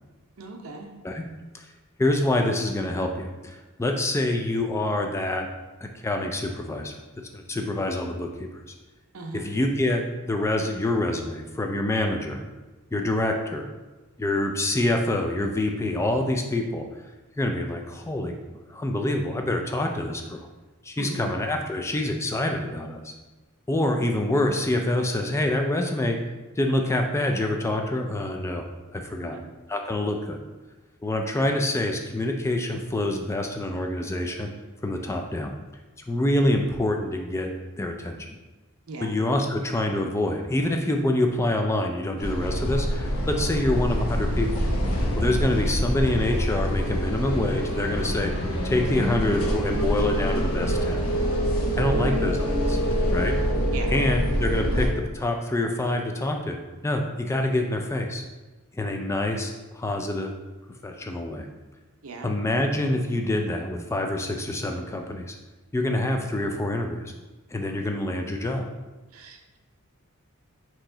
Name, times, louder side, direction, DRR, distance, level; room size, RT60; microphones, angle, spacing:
voice 1, 0.4-0.9 9.1-9.4 21.0-21.3 29.2-29.5 38.9-39.1 43.5-43.7 51.8-52.2 53.7-54.0 62.0-62.3 69.1-69.6, right 2 dB, 70° right, 3 dB, 0.6 m, -37 dB
voice 2, 2.0-5.5 5.8-6.9 7.3-8.5 9.3-12.4 12.9-13.7 14.2-16.9 17.4-18.4 18.7-20.5 20.8-23.1 23.7-26.2 26.6-28.7 28.9-29.4 29.7-30.4 31.0-34.5 34.8-35.5 36.1-38.2 39.0-44.6 45.2-51.0 51.8-52.8 53.1-53.4 53.9-56.6 56.8-58.2 58.8-60.3 60.8-61.5 62.2-65.3 65.7-67.1 67.5-68.6, left 1 dB, 15° left, 3 dB, 0.3 m, -26 dB
sound 1, 42.2-54.9, equal, 80° left, 0.8 m, -25 dB
4.6 x 3.0 x 3.7 m, 1.2 s
head